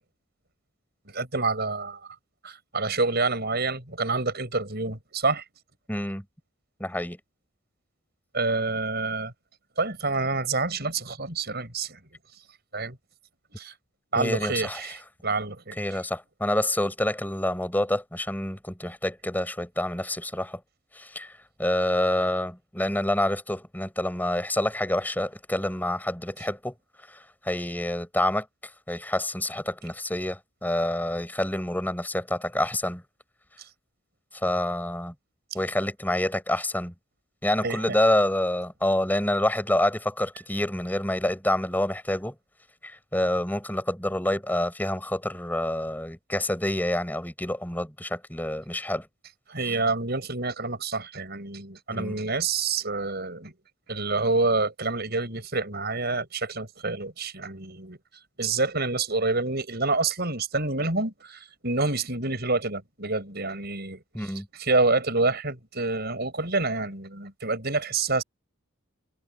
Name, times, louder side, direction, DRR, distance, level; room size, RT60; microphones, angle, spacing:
voice 1, 1.1-2.0 2.4-5.4 8.3-9.3 9.8-12.0 12.7-13.0 13.6-13.8 14.1-15.8 37.6-37.8 49.5-53.5 53.9-58.0 58.4-64.3 64.6-68.2, right 3 dB, 50° right, 6.9 m, -27 dB
voice 2, 5.9-6.2 6.8-7.2 14.1-14.9 15.8-20.6 20.9-26.7 27.1-33.0 34.3-35.1 35.5-36.9 37.4-42.3 42.8-49.1 49.6-49.8 51.9-52.2 64.1-64.5, left 1 dB, 10° left, 4.3 m, -27 dB
head